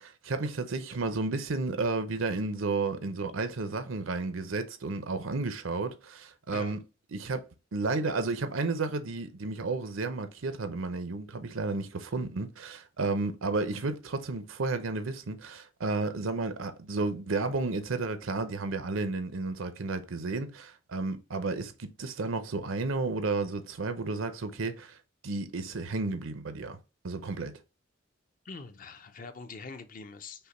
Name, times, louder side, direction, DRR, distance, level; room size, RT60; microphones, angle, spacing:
voice 1, 0.0-6.8 7.1-7.4 7.7-25.0 25.2-26.8 27.0-27.6, right 3 dB, 85° right, 0.7 m, -32 dB
voice 2, 28.4-30.5, left 4 dB, 40° left, 0.5 m, -44 dB
5.5 x 2.2 x 4.1 m
head